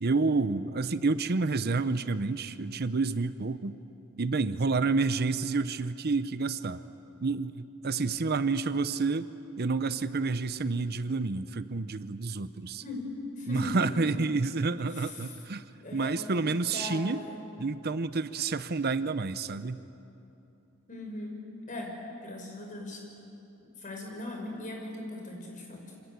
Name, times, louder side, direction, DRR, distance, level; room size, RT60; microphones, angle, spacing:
voice 1, 0.0-3.8 4.2-6.8 7.2-9.3 9.6-12.8 13.5-15.6 15.9-17.2 17.6-19.8, right 3 dB, 50° right, 13 dB, 0.7 m, -29 dB
voice 2, 13.4-13.8 14.9-15.3 15.8-17.4 20.9-21.4 21.7-21.9 22.2-23.0 23.8-25.8, left 2 dB, 35° left, 1 dB, 5.8 m, -39 dB
28.0 x 26.0 x 8.2 m, 2.9 s
head